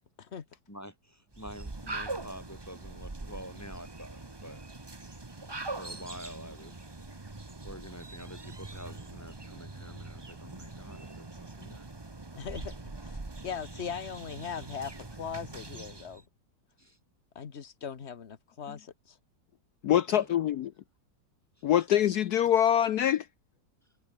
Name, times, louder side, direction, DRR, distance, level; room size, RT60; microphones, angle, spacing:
voice 1, 0.7-4.6 5.7-6.8 7.2-11.9 16.8-17.0 20.1-20.4, equal, 10° left, 2.8 m, -47 dB
sound 1, 1.3-16.2, right 2 dB, 15° right, 1.1 m, -42 dB
voice 2, 12.4-12.8 13.0-13.2 13.4-16.2 17.3-19.2, left 7 dB, 40° left, 1.4 m, -39 dB
voice 3, 19.8-20.7 21.6-23.3, left 10 dB, 65° left, 1.1 m, -24 dB
omnidirectional pair, 2.0 m